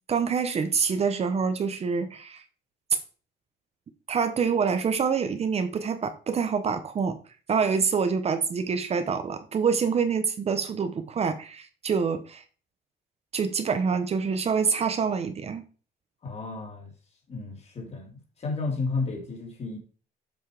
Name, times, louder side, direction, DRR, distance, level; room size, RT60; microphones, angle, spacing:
voice 1, 0.1-2.4 4.1-7.2 7.5-12.4 13.3-15.6, right 6 dB, 40° right, 0.9 m, -26 dB
voice 2, 16.2-16.9 17.3-19.8, left 3 dB, 40° left, 3.1 m, -32 dB
7.6 x 5.4 x 5.0 m
cardioid pair, 110°, 17 cm